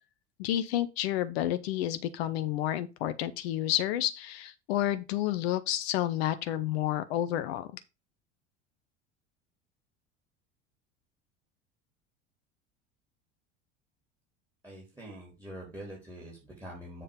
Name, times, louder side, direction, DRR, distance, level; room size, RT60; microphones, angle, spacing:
voice 1, 0.4-7.7, left 12 dB, 55° left, 0.9 m, -30 dB
voice 2, 14.6-17.0, right 1 dB, 10° right, 3.5 m, -45 dB
7.5 x 4.2 x 5.2 m
figure-of-eight pair, 70°, 37 cm